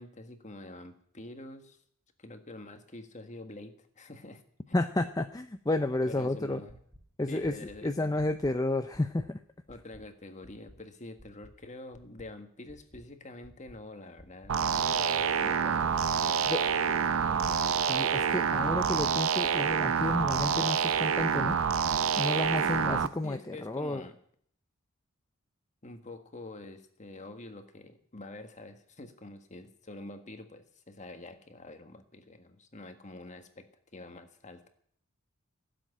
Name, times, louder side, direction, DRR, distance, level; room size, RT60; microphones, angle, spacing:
voice 1, 0.0-1.8 2.2-4.4 4.8-4.9 6.1-6.8 7.3-8.3 9.7-16.0 16.2-17.6 17.9-18.0 22.6-22.7 23.2-24.2 25.8-34.7, left 2 dB, 35° left, 7 dB, 1.6 m, -47 dB
voice 2, 4.7-6.6 7.2-7.6 7.8-9.4 16.5-16.6 17.9-21.6 22.2-24.0, left 2 dB, 15° left, 8 dB, 0.5 m, -31 dB
sound 1, 6.7-7.0 7.4-7.7 8.2-8.5 8.9-9.3 9.7-10.0 10.4-10.8 11.2-11.5 11.9-12.3 12.7-13.0 13.4-13.8 14.2-14.5 14.9-15.3 15.7-16.0 16.4-16.7 17.2-17.5 17.9-18.3 18.7-19.0 19.4-19.8 20.2-20.5 20.9-21.3 21.7-22.0 22.4-22.8, equal, 15° right, 3.5 m, -54 dB
sound 2, 14.5-23.1, right 6 dB, 70° right, 0.7 m, -27 dB
17.0 x 7.7 x 10.0 m, 0.64 s
head